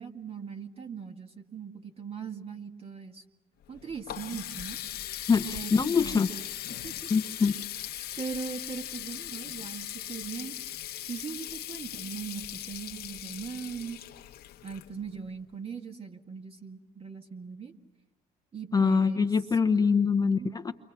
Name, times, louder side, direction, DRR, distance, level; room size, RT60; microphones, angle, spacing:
voice 1, 0.0-3.2 3.7-4.8 5.5-6.2 6.8-7.1 7.4-7.5 8.2-10.5 11.1-14.0 14.6-17.7 18.5-19.3 20.2-20.5, right 6 dB, 35° right, 5 dB, 2.0 m, -40 dB
Water tap faucet, 3.6-15.3, left 12 dB, 65° left, 1.1 m, -39 dB
voice 2, 5.3-6.3 7.1-7.5 18.7-20.7, left 5 dB, 20° left, 7 dB, 0.9 m, -24 dB
29.5 x 24.5 x 5.9 m, 1.0 s
cardioid pair, 110°, 17 cm